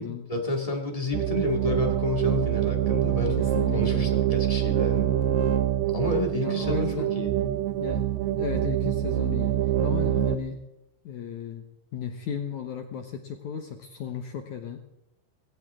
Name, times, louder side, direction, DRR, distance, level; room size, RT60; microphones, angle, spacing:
voice 1, 0.0-3.4 3.7-5.1 5.9-6.9 7.1-7.3, left 2 dB, 45° left, 1 dB, 0.4 m, -30 dB
sound 1, 1.1-10.4, right 11 dB, 75° right, 2.9 m, -25 dB
voice 2, 3.4-4.1 6.4-7.3 7.8-8.1 8.4-10.6 11.0-11.7 11.9-14.8, left 7 dB, 70° left, 5 dB, 1.9 m, -35 dB
20.0 x 17.0 x 3.7 m, 0.83 s
omnidirectional pair, 4.7 m